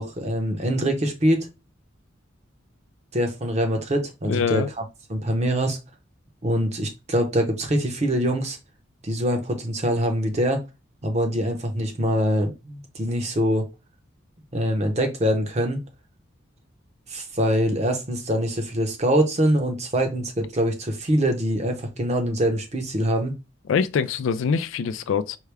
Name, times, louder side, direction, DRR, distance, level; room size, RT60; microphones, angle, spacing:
voice 1, 0.0-1.5 3.1-4.6 5.1-5.8 6.4-8.6 9.0-10.6 11.0-13.6 14.5-15.8 17.1-23.3, equal, 35° right, 0.8 m, -24 dB
voice 2, 4.2-4.7 23.7-25.4, left 6 dB, 80° left, 0.3 m, -24 dB
4.6 x 2.2 x 3.3 m
head